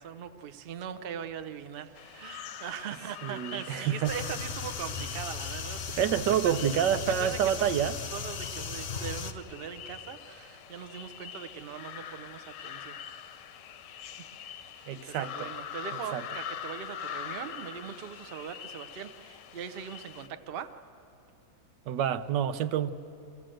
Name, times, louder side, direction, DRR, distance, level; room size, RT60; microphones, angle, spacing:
voice 1, 0.0-6.0 6.4-6.6 7.1-7.8 8.1-13.0 14.7-20.7, right 8 dB, 50° right, 0.7 m, -41 dB
sound 1, 1.9-20.3, left 9 dB, 85° left, 1.4 m, -44 dB
voice 2, 3.2-4.1 6.0-8.0 14.9-15.5 16.1-16.2 21.9-22.9, right 9 dB, 90° right, 1.4 m, -28 dB
sound 2, 4.0-9.3, left 6 dB, 50° left, 0.8 m, -37 dB
25.5 x 16.0 x 7.7 m
omnidirectional pair, 1.8 m